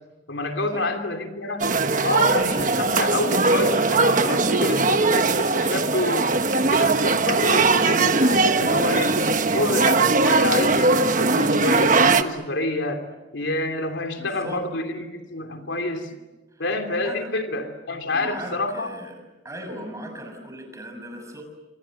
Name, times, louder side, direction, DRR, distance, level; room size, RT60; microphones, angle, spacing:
voice 1, 0.3-1.7 2.0-6.3 6.6-9.2 9.5-13.1 13.3-16.1 16.6-18.9, left 2 dB, 75° left, 5 dB, 3.1 m, -27 dB
sound 1, 1.6-12.2, right 3 dB, 40° right, 1.2 m, -20 dB
voice 2, 14.2-14.7 16.5-16.6 17.0-17.3 18.1-19.1 19.4-21.4, equal, 15° right, 4 dB, 6.4 m, -37 dB
28.0 x 25.5 x 7.8 m, 1.1 s
head